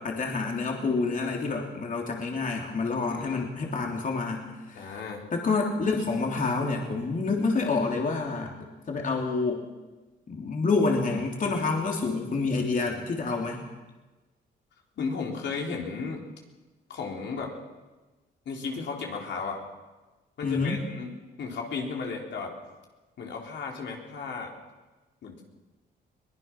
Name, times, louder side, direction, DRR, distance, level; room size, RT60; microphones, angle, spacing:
voice 1, 0.0-5.0 5.3-8.6 8.9-9.6 10.3-13.6 20.4-20.8, left 3 dB, 40° left, 0 dB, 3.4 m, -28 dB
voice 2, 3.1-3.5 4.7-5.3 15.0-16.2 16.9-17.6 18.5-19.6 20.4-21.1 21.4-22.5 23.2-24.5 25.2-25.5, left 4 dB, 65° left, 0 dB, 3.9 m, -34 dB
23.0 x 19.5 x 6.1 m, 1.2 s
cardioid pair, 90°, 20 cm